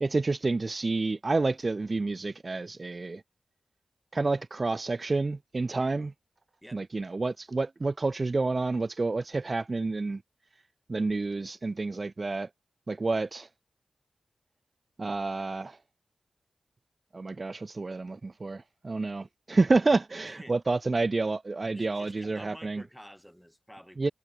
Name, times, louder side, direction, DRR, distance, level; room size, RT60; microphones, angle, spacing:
voice 1, 0.0-3.2 4.1-6.1 6.7-10.2 10.9-12.5 12.9-13.5 15.0-15.8 17.1-22.8 24.0-24.1, right 3 dB, 40° right, 0.3 m, -29 dB
voice 2, 20.2-20.6 21.7-24.1, equal, ahead, 1.5 m, -50 dB
cardioid pair, 60°, 0 cm